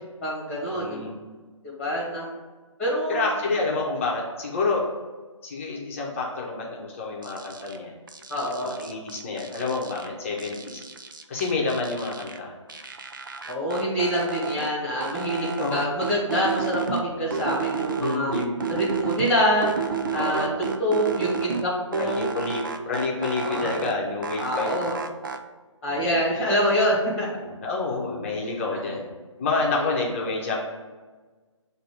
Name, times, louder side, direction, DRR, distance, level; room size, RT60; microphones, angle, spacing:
voice 1, 0.2-1.0 1.6-2.3 2.8-3.3 8.3-8.7 13.5-18.3 18.7-19.7 20.1-22.3 23.4-23.7 24.4-24.9 25.8-27.3 28.7-28.9, equal, 5° left, -6 dB, 1.5 m, -26 dB
voice 2, 0.7-1.1 3.1-4.8 5.4-7.9 8.6-10.8 11.3-12.5 15.3-15.9 18.0-18.6 20.1-20.5 22.0-24.9 25.9-26.2 27.4-29.1 29.4-30.5, left 3 dB, 25° left, -3 dB, 0.9 m, -28 dB
sound 1, 7.2-7.8 8.1-10.1 10.4-12.4 12.7-14.7 15.0-17.0 17.3-19.3 19.6-21.6 21.9-23.9 24.2-25.4, right 5 dB, 40° right, 0.4 m, -31 dB
7.8 x 2.7 x 5.0 m, 1.3 s
figure-of-eight pair, 150°, 16 cm